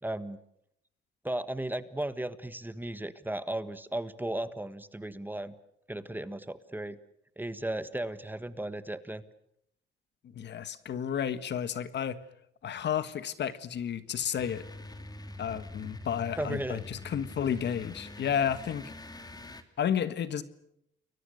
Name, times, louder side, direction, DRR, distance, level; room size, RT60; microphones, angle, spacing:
voice 1, 0.0-0.4 1.2-5.5 5.9-7.0 7.4-9.2 16.4-16.8, right 1 dB, 10° right, 13 dB, 1.5 m, -35 dB
voice 2, 10.3-12.2 12.6-14.6 15.4-18.9 19.8-20.4, left 8 dB, 60° left, 13 dB, 1.7 m, -32 dB
sound 1, 14.4-19.6, left 2 dB, 20° left, 2.7 m, -44 dB
29.5 x 22.5 x 6.6 m, 0.75 s
cardioid pair, 90°, 20 cm